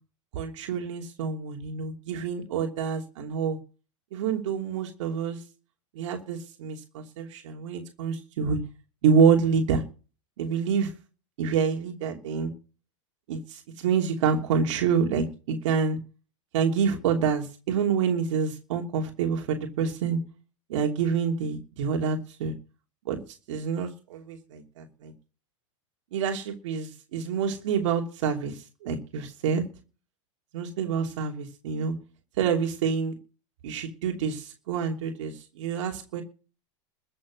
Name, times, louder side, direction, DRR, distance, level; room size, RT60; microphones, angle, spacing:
voice 1, 0.3-3.6 4.1-5.4 5.9-8.6 9.0-9.8 10.4-10.9 11.4-12.5 13.3-16.0 16.5-20.2 20.7-22.5 23.1-23.2 23.5-25.1 26.1-29.7 30.5-31.9 32.4-33.1 33.6-36.2, right 6 dB, 70° right, 2 dB, 3.0 m, -27 dB
14.5 x 7.7 x 7.5 m, 0.35 s
hypercardioid pair, 115°, 16 cm